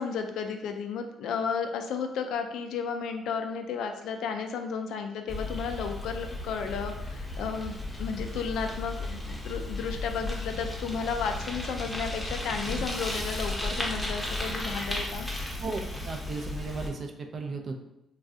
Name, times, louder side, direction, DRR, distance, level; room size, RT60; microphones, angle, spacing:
voice 1, 0.0-7.7 8.0-15.3, left 6 dB, 80° left, 5 dB, 0.3 m, -33 dB
Bicycle, 5.3-16.9, left 1 dB, 10° left, 0.7 m, -34 dB
voice 2, 15.6-17.8, right 3 dB, 50° right, 4 dB, 0.4 m, -35 dB
3.3 x 2.3 x 2.5 m, 0.87 s
cardioid pair, 90°, 0 cm